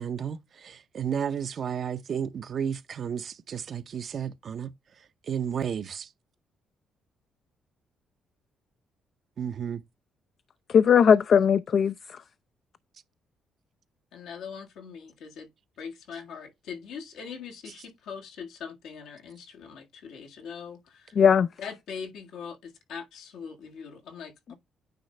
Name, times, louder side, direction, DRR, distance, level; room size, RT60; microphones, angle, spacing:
voice 1, 0.0-4.7 5.2-6.1 9.4-9.8, right 8 dB, 55° right, 0.7 m, -32 dB
voice 2, 10.7-12.2 21.2-21.5 24.5-24.6, left 7 dB, 55° left, 0.4 m, -19 dB
voice 3, 14.1-15.5 15.8-21.2 21.6-24.5, left 6 dB, 80° left, 1.7 m, -41 dB
9.3 x 3.8 x 3.3 m
cardioid pair, 90°, 0 cm